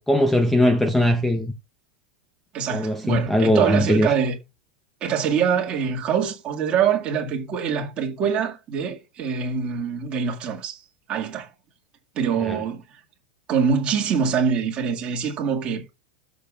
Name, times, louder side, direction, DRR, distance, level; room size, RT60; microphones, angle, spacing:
voice 1, 0.0-1.5 2.7-4.1 12.4-12.6, left 1 dB, 5° left, 0.5 m, -20 dB
voice 2, 2.5-4.4 5.0-10.8 11.1-11.5 12.2-12.8 13.5-15.8, right 7 dB, 25° right, 2.1 m, -24 dB
13.0 x 6.6 x 2.4 m
supercardioid pair, 165°, 5 cm